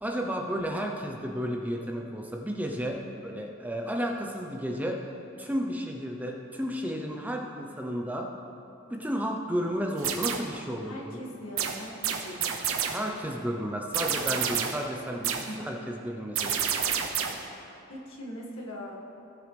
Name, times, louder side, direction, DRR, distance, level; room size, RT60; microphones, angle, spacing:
voice 1, 0.0-3.0 3.2-5.1 5.4-8.3 8.9-11.2 12.9-15.8 16.0-16.7, equal, 10° right, 1 dB, 0.6 m, -32 dB
sound 1, 10.0-10.6 11.6-13.1 13.9-14.9 15.2-15.6 16.4-17.5, right 8 dB, 90° right, 0.8 m, -29 dB
voice 2, 10.8-12.7 15.5-15.6 17.9-19.2, equal, 90° left, -2 dB, 1.8 m, -41 dB
18.0 x 6.4 x 3.4 m, 2.8 s
head